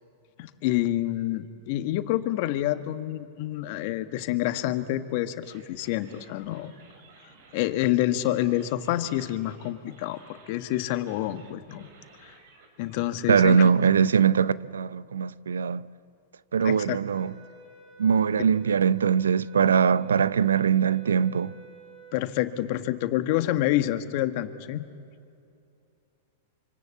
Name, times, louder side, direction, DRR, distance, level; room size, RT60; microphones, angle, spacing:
voice 1, 0.4-6.7 7.5-11.9 12.2-12.3 12.8-13.7 16.6-17.0 22.1-24.8, left 14 dB, 55° left, 1.5 m, -28 dB
sound 1, 5.4-13.2, right 4 dB, 65° right, 5.3 m, -55 dB
voice 2, 13.3-15.9 16.5-17.3 18.0-21.6, right 7 dB, 85° right, 0.6 m, -22 dB
sound 2, 17.1-22.3, right 6 dB, 30° right, 7.4 m, -50 dB
26.0 x 25.5 x 8.5 m
hypercardioid pair, 110°, 0 cm